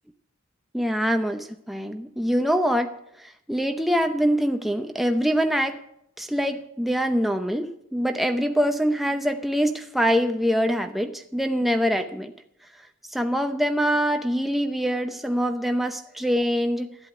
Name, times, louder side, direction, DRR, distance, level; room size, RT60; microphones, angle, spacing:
voice 1, 0.7-2.9 3.2-5.8 6.2-12.3 13.1-17.0, equal, ahead, 5 dB, 0.7 m, -24 dB
13.0 x 8.1 x 9.5 m, 0.75 s
head